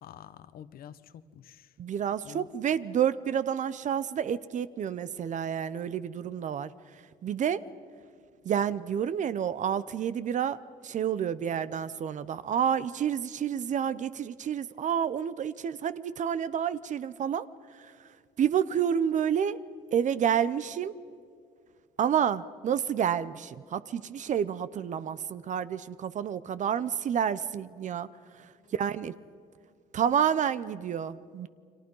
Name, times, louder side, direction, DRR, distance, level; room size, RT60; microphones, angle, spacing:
voice 1, 0.0-1.7 2.2-2.5 28.6-28.7, left 10 dB, 60° left, 15 dB, 1.0 m, -48 dB
voice 2, 1.8-6.7 7.2-7.6 8.4-10.6 10.8-17.5 18.4-19.6 19.9-20.9 22.0-28.1 28.7-29.1 29.9-31.5, right 8 dB, 45° right, 15 dB, 0.7 m, -29 dB
30.0 x 23.5 x 5.5 m, 2.2 s
cardioid pair, 110°, 17 cm